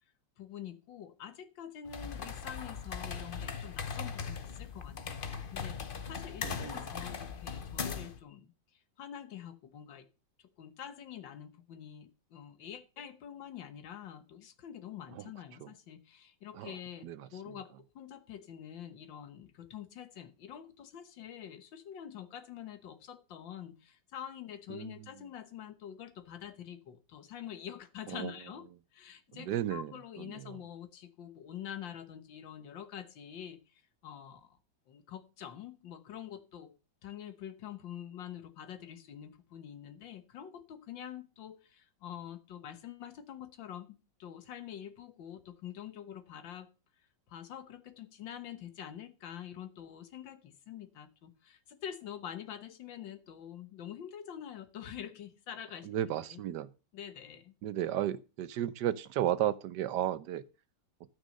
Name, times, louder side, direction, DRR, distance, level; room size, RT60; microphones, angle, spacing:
voice 1, 0.4-10.1 10.6-28.7 28.9-34.6 34.9-36.7 37.0-46.7 47.3-55.9 56.3-56.4 56.9-57.5, left 9 dB, 80° left, 1.9 m, -46 dB
sound 1, 1.9-8.2, left 6 dB, 40° left, 0.8 m, -39 dB
voice 2, 6.4-6.8 16.6-16.7 17.0-17.1 24.7-24.9 28.1-28.3 29.5-29.9 55.9-56.7 57.6-60.4, right 11 dB, 70° right, 1.3 m, -33 dB
12.5 x 6.2 x 6.5 m
omnidirectional pair, 2.0 m